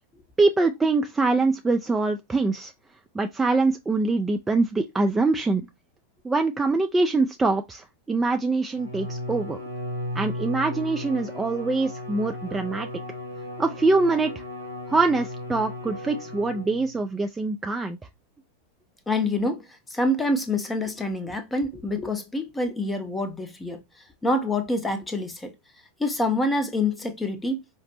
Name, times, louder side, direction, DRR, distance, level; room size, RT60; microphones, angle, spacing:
voice 1, 0.4-2.7 3.1-5.6 6.2-9.6 10.1-12.9 13.6-14.4 14.9-18.0, right 3 dB, 10° right, 0.4 m, -24 dB
Bowed string instrument, 8.7-17.0, left 1 dB, 90° right, 0.9 m, -35 dB
voice 2, 19.1-23.8 24.2-25.5 26.0-27.6, left 2 dB, 10° left, 0.7 m, -26 dB
4.7 x 2.2 x 2.9 m
figure-of-eight pair, 90°, 0 cm